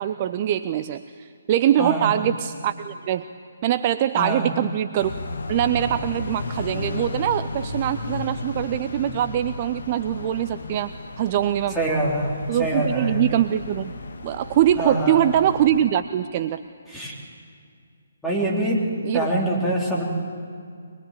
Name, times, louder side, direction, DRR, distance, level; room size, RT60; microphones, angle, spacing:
voice 1, 0.0-3.3 3.6-5.1 5.5-11.8 12.5-13.9 14.2-16.6 19.0-19.3, right 11 dB, 35° right, 12 dB, 0.5 m, -23 dB
voice 2, 1.8-2.1 4.1-4.5 11.7-13.2 14.8-15.2 16.9-17.1 18.2-18.9 19.1-20.0, right 1 dB, ahead, -5 dB, 3.5 m, -24 dB
sound 1, 5.0-15.8, left 3 dB, 60° left, 1.6 m, -34 dB
23.0 x 21.0 x 8.8 m, 2.3 s
figure-of-eight pair, 140°, 0 cm